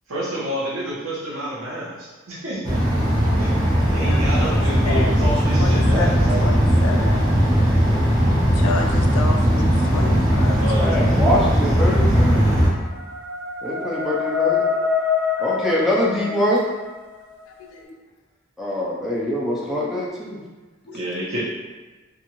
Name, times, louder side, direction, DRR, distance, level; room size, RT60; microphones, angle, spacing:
voice 1, 0.1-2.8 3.4-3.5 3.9-6.6 7.8-7.9 10.5-12.0 20.9-21.5, right 1 dB, 75° right, -7 dB, 1.0 m, -29 dB
sound 1, 2.6-12.7, equal, 20° right, 0.8 m, -18 dB
voice 2, 4.0-7.3 8.5-11.1 15.6-15.7 17.5-17.9 20.9-21.0, left 3 dB, 90° left, 2 dB, 0.4 m, -31 dB
voice 3, 10.8-12.4 13.6-14.6 15.4-16.6 18.6-20.4, equal, ahead, -5 dB, 0.4 m, -23 dB
sound 2, 12.1-17.1, left 6 dB, 50° left, 0.6 m, -25 dB
2.6 x 2.4 x 2.9 m, 1.3 s
head